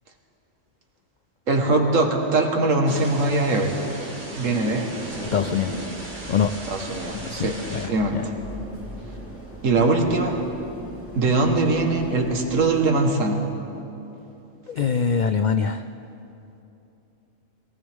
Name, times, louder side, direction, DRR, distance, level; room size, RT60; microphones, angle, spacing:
voice 1, 1.5-3.7 4.3-4.9 6.7-8.2 9.6-10.4 11.1-13.4, right 2 dB, 75° right, 3 dB, 1.8 m, -21 dB
Thunder / Rain, 2.9-7.9, right 1 dB, 35° right, 2.2 m, -36 dB
sound 1, 5.1-12.6, right 1 dB, 10° left, 2.7 m, -40 dB
voice 2, 5.3-5.7 6.3-6.5 7.3-8.2 14.7-15.8, left 6 dB, 85° left, 9 dB, 0.4 m, -24 dB
22.5 x 17.5 x 3.6 m, 2.9 s
omnidirectional pair, 1.3 m